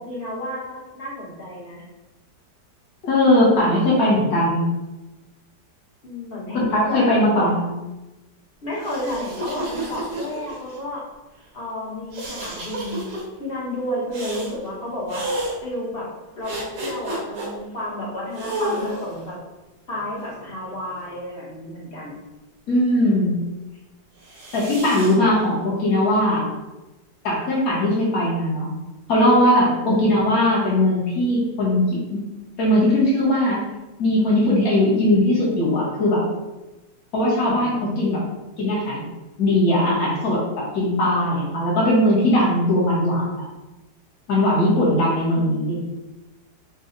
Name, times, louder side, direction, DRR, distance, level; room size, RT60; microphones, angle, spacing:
voice 1, 0.0-1.8 6.0-7.5 8.6-11.0 11.5-15.2 15.6-16.1 16.3-19.4 19.9-22.2 29.8-30.1 37.4-38.2 44.9-45.1 45.3-45.8, left 1 dB, 40° left, -5 dB, 1.1 m, -31 dB
voice 2, 3.0-4.6 6.5-7.7 22.7-23.4 24.5-26.5 27.2-28.7 29.1-32.2 32.6-33.6 34.0-36.3 37.1-38.2 38.6-39.0 39.4-40.4 40.7-43.5 44.3-45.8, left 1 dB, 55° left, -5 dB, 1.6 m, -19 dB
sound 1, 8.7-10.8 12.1-13.2 14.1-14.5 15.1-15.5 16.4-17.5 18.3-19.2 20.0-21.1 24.2-25.1, right 1 dB, 65° right, 1.5 m, -31 dB
4.1 x 2.3 x 3.8 m, 1.1 s
omnidirectional pair, 1.9 m